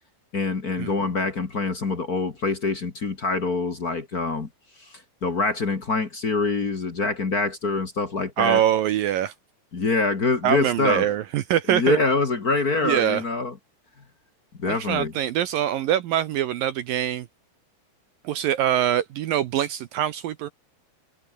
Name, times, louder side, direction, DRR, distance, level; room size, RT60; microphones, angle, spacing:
voice 1, 0.3-4.5 4.8-8.6 9.7-11.1 11.7-13.5 14.6-15.1, left 3 dB, 40° left, 1.4 m, -25 dB
voice 2, 8.4-9.3 10.4-12.0 12.8-13.2 14.7-17.3 18.2-20.5, right 11 dB, 70° right, 2.4 m, -24 dB
omnidirectional pair, 4.9 m